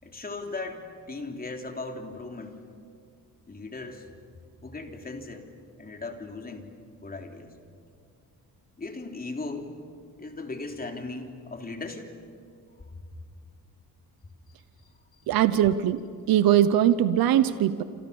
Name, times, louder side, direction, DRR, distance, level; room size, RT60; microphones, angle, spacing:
voice 1, 0.0-2.7 3.5-4.1 4.6-5.5 5.8-6.7 7.0-7.5 8.8-9.7 10.2-12.2, left 3 dB, 25° left, 3 dB, 3.5 m, -37 dB
voice 2, 15.3-16.0 16.3-17.8, right 11 dB, 85° right, 12 dB, 1.0 m, -21 dB
28.5 x 27.5 x 7.1 m, 2.3 s
cardioid pair, 120°, 35 cm